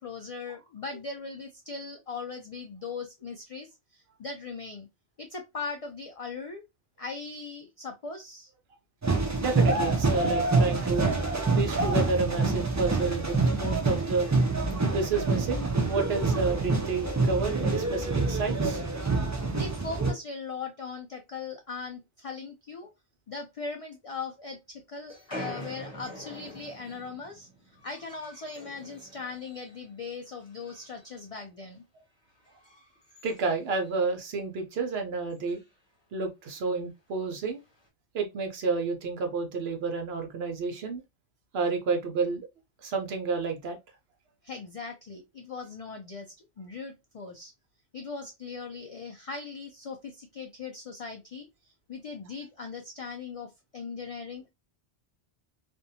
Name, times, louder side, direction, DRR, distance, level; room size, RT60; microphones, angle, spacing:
voice 1, 0.0-3.7 4.2-4.9 5.2-6.6 7.0-8.5 19.5-22.9 23.3-27.5 27.8-31.8 44.4-47.5 47.9-51.5 51.9-53.5 53.7-54.5, left 4 dB, 65° left, 0.3 m, -39 dB
sound 1, 9.0-20.1, right 3 dB, 30° right, 0.3 m, -26 dB
voice 2, 9.4-11.2 11.6-14.3 14.9-19.1 33.2-35.6 36.1-37.6 38.1-41.0 41.5-42.5 42.8-43.8, right 4 dB, 70° right, 0.9 m, -30 dB
sound 2, 25.1-29.9 30.2-31.2 31.5-31.7 32.3-34.2 34.6-34.7 34.9-35.0 35.3-35.7 36.5-36.7 37.5-37.9, equal, 25° left, 0.9 m, -46 dB
2.6 x 2.2 x 2.6 m
omnidirectional pair, 1.1 m